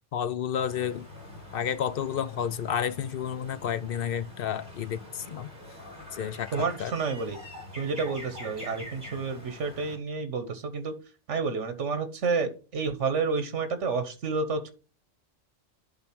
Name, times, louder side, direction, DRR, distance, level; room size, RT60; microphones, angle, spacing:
voice 1, 0.1-1.1 1.5-5.5 6.1-6.5 6.8-6.9, left 8 dB, 60° left, 0.7 m, -31 dB
sound 1, 0.5-10.0, left 1 dB, 40° right, 3.3 m, -45 dB
voice 2, 6.5-7.4 7.8-10.9 11.3-14.7, right 4 dB, 80° right, 1.4 m, -30 dB
10.5 x 3.7 x 5.9 m
omnidirectional pair, 1.2 m